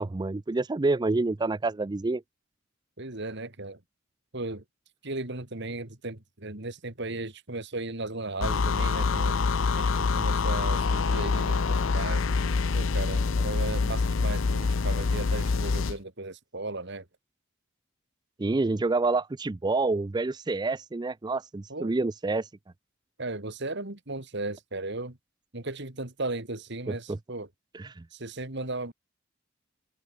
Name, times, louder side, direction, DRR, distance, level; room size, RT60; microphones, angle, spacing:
voice 1, 0.0-2.2 18.4-22.5 26.9-27.0 27.7-28.0, right 3 dB, 20° right, 0.4 m, -28 dB
voice 2, 3.0-3.8 4.3-4.6 5.0-9.4 9.8-12.2 12.7-17.0 21.7-21.9 23.2-25.2 25.5-27.5 28.1-28.9, right 2 dB, 60° right, 2.9 m, -36 dB
sound 1, 8.4-16.0, left 4 dB, 75° left, 0.6 m, -26 dB
head